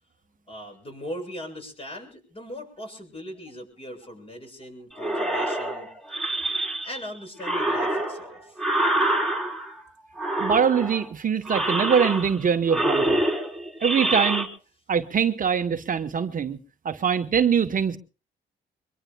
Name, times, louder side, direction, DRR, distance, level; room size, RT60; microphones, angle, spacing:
voice 1, 0.5-5.9 6.8-8.6, equal, 30° left, 7.4 m, -39 dB
sound 1, 5.0-7.1 7.4-9.8 10.2-11.1 11.4-12.4 12.7-14.4, right 1 dB, ahead, 3.8 m, -26 dB
voice 2, 10.4-13.2 13.8-14.5 14.9-16.6 16.8-18.0, right 7 dB, 45° right, 1.0 m, -23 dB
23.5 x 22.5 x 2.3 m
cardioid pair, 90°, 20 cm